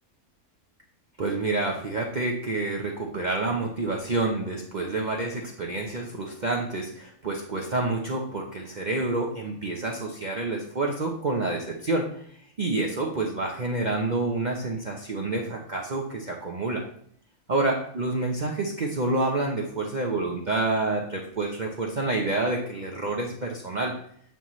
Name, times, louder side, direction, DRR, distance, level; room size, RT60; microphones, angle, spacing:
voice 1, 1.2-12.2 12.6-16.8 17.5-23.9, right 2 dB, 40° right, -1 dB, 0.8 m, -28 dB
9.2 x 5.7 x 3.1 m, 0.64 s
omnidirectional pair, 1.5 m